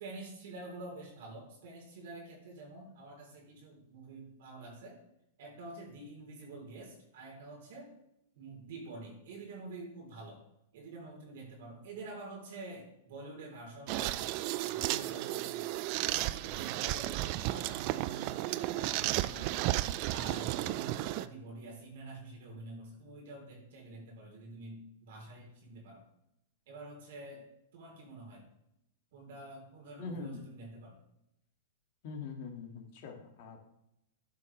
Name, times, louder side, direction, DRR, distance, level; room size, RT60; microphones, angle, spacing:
voice 1, 0.0-5.0 5.4-7.9 8.4-10.4 10.7-14.3 14.7-15.7 16.1-19.6 20.1-26.0 26.7-27.5 27.7-28.5 29.1-31.0, right 2 dB, 65° right, -1 dB, 3.6 m, -47 dB
sound 1, 13.9-21.3, right 16 dB, 50° right, 0.4 m, -33 dB
voice 2, 30.0-30.4 32.0-33.6, left 4 dB, 50° left, 2 dB, 2.0 m, -43 dB
12.0 x 5.6 x 3.3 m, 0.82 s
hypercardioid pair, 105°, 0 cm